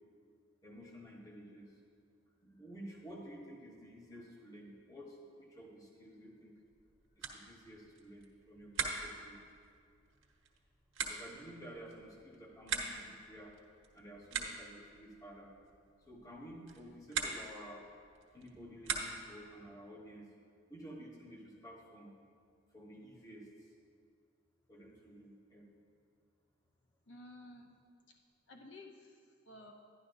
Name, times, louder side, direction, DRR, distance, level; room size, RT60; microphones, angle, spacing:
voice 1, 0.6-1.8 2.4-6.5 7.2-9.4 11.1-13.5 13.9-15.5 16.1-17.8 18.3-20.3 20.7-22.1 22.7-23.7 24.7-25.7, equal, 20° left, -2 dB, 1.2 m, -52 dB
sound 1, 6.6-19.5, right 5 dB, 85° right, 1.1 m, -44 dB
voice 2, 27.1-27.8 28.1-28.2 28.5-29.7, left 2 dB, 65° left, 2 dB, 0.7 m, -54 dB
11.0 x 11.0 x 2.6 m, 2.2 s
head